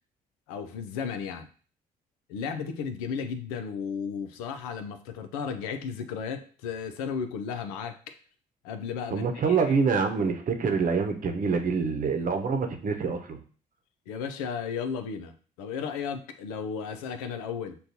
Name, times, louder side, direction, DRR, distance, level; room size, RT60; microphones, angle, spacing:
voice 1, 0.5-1.5 2.3-8.1 8.6-9.7 14.1-17.8, left 6 dB, 85° left, 8 dB, 0.5 m, -34 dB
voice 2, 9.1-13.4, right 5 dB, 50° right, 5 dB, 0.8 m, -26 dB
6.4 x 2.3 x 2.7 m, 0.41 s
hypercardioid pair, 55°, 18 cm